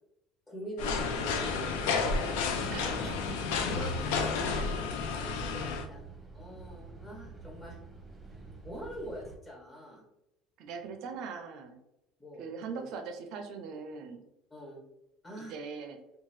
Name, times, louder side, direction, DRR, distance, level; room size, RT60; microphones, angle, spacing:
voice 1, 0.5-2.1 2.8-3.1 3.6-4.6 5.1-6.0 6.3-7.8 8.6-10.0 12.2-12.5 12.8-12.9 14.5-14.8 15.2-15.5, equal, 25° left, -2 dB, 1.4 m, -43 dB
sound 1, 0.8-5.9, left 4 dB, 85° left, 0.3 m, -31 dB
sound 2, 1.1-9.4, right 4 dB, 10° right, 0.8 m, -49 dB
voice 2, 2.7-3.2 3.5-3.6 4.2-4.4 10.6-11.8 12.4-14.2 15.4-16.0, right 5 dB, 65° right, 5 dB, 0.4 m, -41 dB
2.7 x 2.3 x 3.0 m, 0.88 s
supercardioid pair, 90°, 0 cm